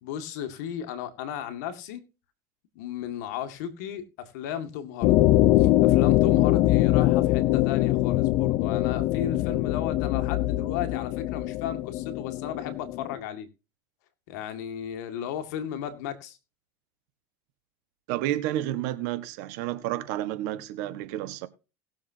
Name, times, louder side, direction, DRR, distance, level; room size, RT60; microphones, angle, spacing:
voice 1, 0.0-2.0 2.8-5.3 5.6-13.5 14.3-16.4, left 9 dB, 85° left, 2.1 m, -35 dB
sound 1, 5.0-13.2, left 16 dB, 65° left, 0.7 m, -23 dB
voice 2, 18.1-21.5, right 13 dB, 80° right, 1.4 m, -30 dB
19.5 x 7.2 x 2.8 m
supercardioid pair, 115°, 9 cm